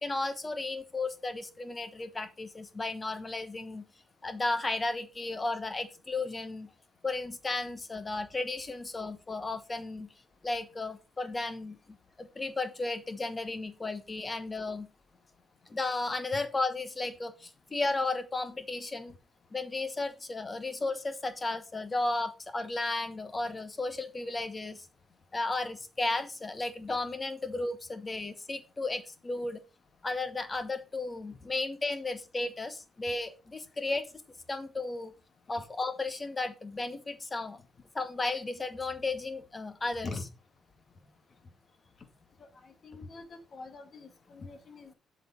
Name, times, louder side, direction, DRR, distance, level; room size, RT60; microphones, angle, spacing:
voice 1, 0.0-3.8 4.2-6.7 7.0-10.1 10.4-14.9 15.7-19.1 19.5-24.9 25.3-29.6 30.0-34.1 34.5-35.1 35.5-37.6 37.9-40.1, left 2 dB, 25° left, 11 dB, 1.2 m, -34 dB
voice 2, 42.6-44.9, left 3 dB, 45° left, 8 dB, 1.9 m, -43 dB
7.7 x 5.2 x 5.0 m, 0.31 s
cardioid pair, 90°, 0 cm